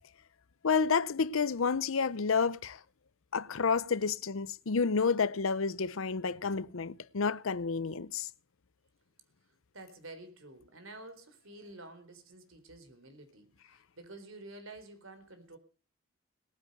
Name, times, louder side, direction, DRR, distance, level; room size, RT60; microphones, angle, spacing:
voice 1, 0.6-2.8 3.3-8.3, left 5 dB, 70° left, 0.7 m, -30 dB
voice 2, 9.7-15.6, right 2 dB, 70° right, 3.8 m, -50 dB
18.5 x 9.6 x 6.5 m
head